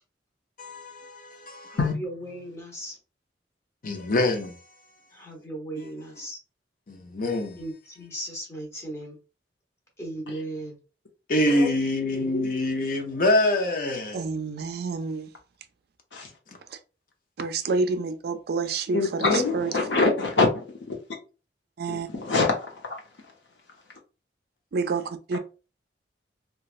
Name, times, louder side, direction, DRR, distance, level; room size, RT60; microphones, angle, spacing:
voice 1, 0.6-1.8 3.8-4.6 5.8-6.0 6.9-7.6 11.3-14.2, left 1 dB, 50° left, 0.6 m, -25 dB
voice 2, 1.7-3.0 5.1-6.4 7.6-9.2 10.0-10.8, right 1 dB, 15° left, 0.9 m, -37 dB
voice 3, 14.1-15.3 16.7-16.8 17.4-19.7 21.8-22.1 24.7-25.4, right 4 dB, 60° right, 0.4 m, -28 dB
voice 4, 18.9-21.0 22.1-22.6, left 3 dB, 85° left, 0.8 m, -24 dB
3.0 x 2.3 x 2.4 m
head